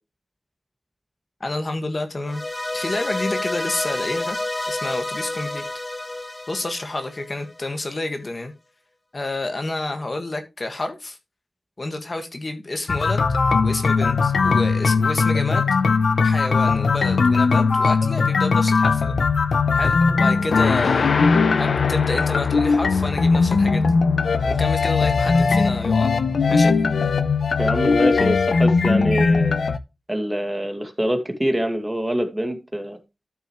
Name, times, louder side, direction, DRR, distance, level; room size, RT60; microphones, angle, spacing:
voice 1, 1.4-2.4 2.7-4.4 4.7-5.6 6.5-8.5 9.1-11.2 11.8-13.2 13.6-15.7 16.2-19.1 19.7-21.1 21.6-24.0 24.5-26.2 26.5-26.7, left 2 dB, 40° left, 6 dB, 1.8 m, -29 dB
sound 1, 2.3-7.5, left 2 dB, 20° left, 1.0 m, -29 dB
sound 2, 12.9-29.8, left 4 dB, 85° left, 0.8 m, -19 dB
voice 2, 27.6-29.6 30.1-33.0, right 1 dB, 15° right, 5 dB, 2.1 m, -25 dB
13.0 x 6.9 x 3.1 m, 0.25 s
wide cardioid pair, 115°, 0 cm